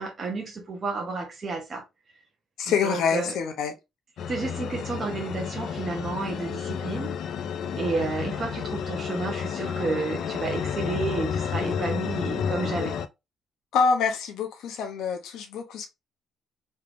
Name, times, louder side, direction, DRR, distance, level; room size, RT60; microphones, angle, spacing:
voice 1, 0.0-1.8 2.8-3.3 4.3-7.2 7.7-13.0, right 3 dB, 30° right, 0.8 m, -31 dB
voice 2, 2.6-3.7 13.7-15.9, left 5 dB, 80° left, 0.7 m, -26 dB
sound 1, 4.2-13.1, left 7 dB, 60° left, 0.4 m, -31 dB
3.3 x 3.2 x 2.5 m
cardioid pair, 165°, 0 cm